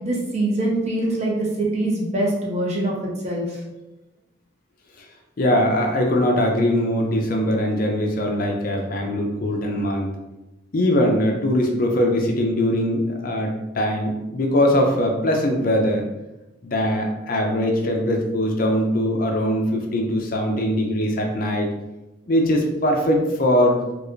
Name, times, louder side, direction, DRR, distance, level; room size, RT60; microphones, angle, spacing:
voice 1, 0.0-2.9 3.2-3.6, right 1 dB, 35° right, -3 dB, 0.8 m, -23 dB
voice 2, 5.4-10.1 10.7-16.1 16.6-21.7 22.3-23.8, left 1 dB, 45° left, 2 dB, 0.5 m, -21 dB
4.6 x 2.4 x 2.5 m, 1.0 s
head